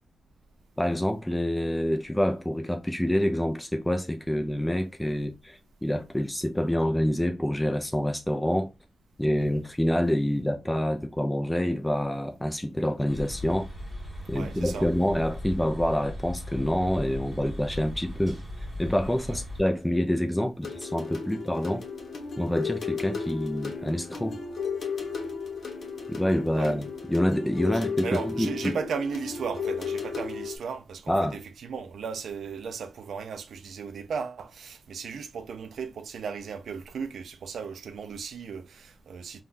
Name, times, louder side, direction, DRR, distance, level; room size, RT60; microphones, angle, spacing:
voice 1, 0.8-8.7 9.2-13.7 14.3-18.4 18.8-21.8 22.4-24.4 26.1-28.8 31.1-31.4, equal, 5° left, 0.4 m, -27 dB
sound 1, 13.1-19.6, left 1 dB, 10° right, 1.5 m, -38 dB
voice 2, 14.3-14.9 19.3-19.4 26.6-26.8 28.0-39.4, right 6 dB, 85° right, 0.4 m, -36 dB
sound 2, 20.6-30.6, left 5 dB, 65° left, 0.8 m, -34 dB
3.6 x 2.2 x 2.5 m
cardioid pair, 90°, 0 cm